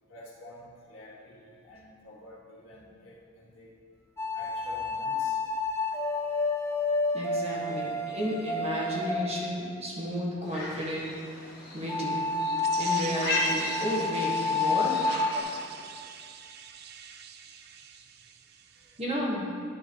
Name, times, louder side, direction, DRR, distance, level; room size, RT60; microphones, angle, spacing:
voice 1, 0.0-3.8 4.3-5.5 18.7-19.0, left 1 dB, 80° left, -6 dB, 1.8 m, -49 dB
sound 1, 4.2-10.0 11.9-15.4, left 3 dB, 15° left, 0.4 m, -30 dB
voice 2, 7.1-11.1 11.7-12.2 12.8-15.0 19.0-19.5, equal, 30° right, -5 dB, 1.5 m, -32 dB
sound 2, 10.4-15.7, left 2 dB, 50° left, 1.4 m, -36 dB
sound 3, 12.6-19.0, right 8 dB, 55° right, 0.4 m, -44 dB
11.0 x 5.4 x 3.0 m, 2.3 s
head